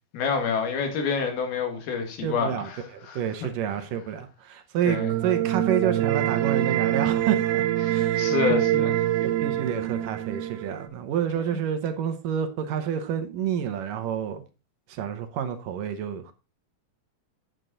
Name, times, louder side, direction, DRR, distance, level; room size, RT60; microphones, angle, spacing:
voice 1, 0.1-2.8 3.1-3.2 4.8-5.1 7.8-9.0, left 5 dB, 80° left, 3.9 m, -27 dB
voice 2, 2.2-8.6 9.2-14.4 14.9-16.3, right 9 dB, 70° right, 2.4 m, -29 dB
sound 1, 4.9-10.9, right 13 dB, 85° right, 2.6 m, -25 dB
9.1 x 8.4 x 3.9 m
omnidirectional pair, 4.3 m